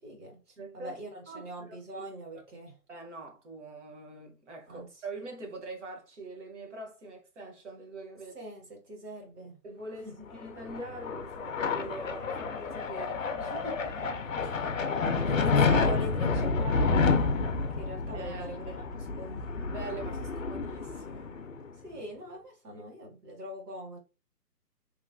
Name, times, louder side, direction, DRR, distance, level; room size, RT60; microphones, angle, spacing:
voice 1, 0.0-2.8 4.7-5.0 8.3-9.6 10.0-10.3 13.4-14.1 14.4-14.8 15.2-17.4 17.7-19.4 21.7-24.0, right 1 dB, 65° right, 1.8 m, -42 dB
voice 2, 0.6-1.0 1.3-2.0 2.9-8.3 9.6-13.2 14.9-15.4 18.1-18.8 19.7-21.3 22.7-22.8, right 2 dB, 45° right, 1.0 m, -44 dB
sound 1, 10.4-21.7, left 4 dB, 50° left, 0.6 m, -29 dB
3.0 x 2.9 x 2.6 m
hypercardioid pair, 160°, 49 cm